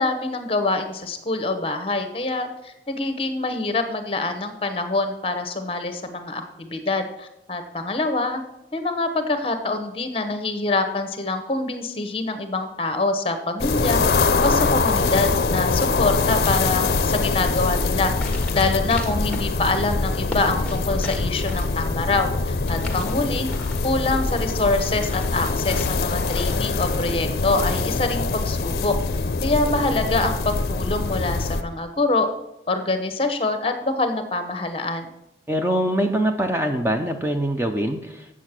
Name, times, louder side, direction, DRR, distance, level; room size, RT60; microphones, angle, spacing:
voice 1, 0.0-8.4 8.7-18.1 18.5-23.5 23.8-32.3 32.7-35.1, left 3 dB, 30° left, 8 dB, 0.9 m, -25 dB
sound 1, 13.6-31.6, left 3 dB, 55° left, 0.5 m, -23 dB
sound 2, 18.0-26.8, left 1 dB, 5° left, 1.3 m, -38 dB
voice 2, 35.5-38.3, right 1 dB, 15° right, 5 dB, 0.5 m, -23 dB
8.2 x 7.3 x 6.0 m, 0.90 s
head